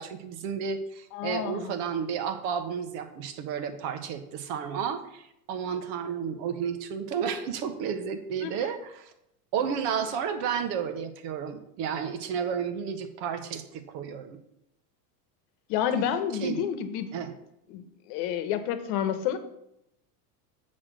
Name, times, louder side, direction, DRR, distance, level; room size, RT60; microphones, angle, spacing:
voice 1, 0.0-9.1 9.5-14.4 16.4-16.6 17.1-17.3, right 7 dB, 55° right, 8 dB, 1.2 m, -32 dB
voice 2, 1.1-1.7 8.4-8.6 15.7-17.1 17.7-19.4, left 9 dB, 60° left, 10 dB, 1.1 m, -29 dB
7.4 x 4.4 x 6.2 m, 0.80 s
hypercardioid pair, 105°, 49 cm